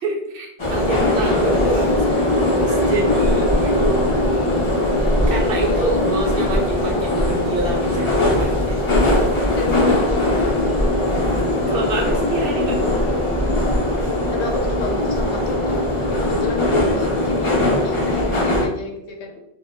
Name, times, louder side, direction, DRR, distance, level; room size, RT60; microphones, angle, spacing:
voice 1, 0.0-2.3 2.6-4.1 5.3-8.7 11.2-11.3 11.7-12.8, right 2 dB, 60° right, -1 dB, 0.8 m, -26 dB
sound 1, 0.6-18.7, left 1 dB, 35° left, 0.5 m, -20 dB
voice 2, 9.6-10.7 14.3-17.6 17.8-19.5, left 2 dB, 85° left, 2 dB, 0.9 m, -31 dB
2.3 x 2.0 x 3.1 m, 0.80 s
omnidirectional pair, 1.1 m